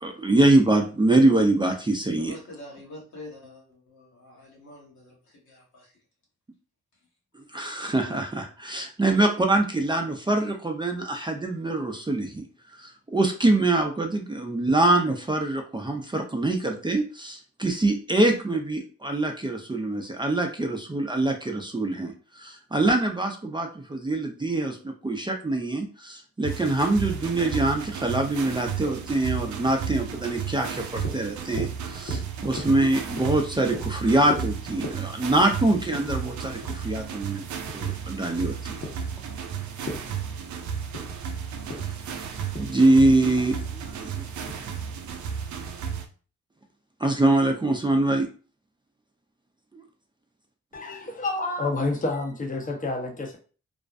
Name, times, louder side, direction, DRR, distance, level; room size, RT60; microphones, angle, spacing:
voice 1, 0.0-2.3 7.5-12.4 13.1-22.1 22.4-24.8 25.0-37.4 37.7-38.7 42.6-43.5 44.0-44.2 47.0-48.3, right 2 dB, 15° right, 0.5 m, -24 dB
voice 2, 2.2-5.9 8.7-8.8, left 1 dB, 75° left, 1.3 m, -46 dB
sound 1, 26.4-46.1, right 7 dB, 80° right, 0.4 m, -33 dB
sound 2, 31.0-45.2, left 2 dB, 50° left, 1.0 m, -41 dB
voice 3, 50.7-53.4, left 2 dB, 25° left, 0.7 m, -29 dB
2.5 x 2.1 x 2.4 m
supercardioid pair, 50°, 29 cm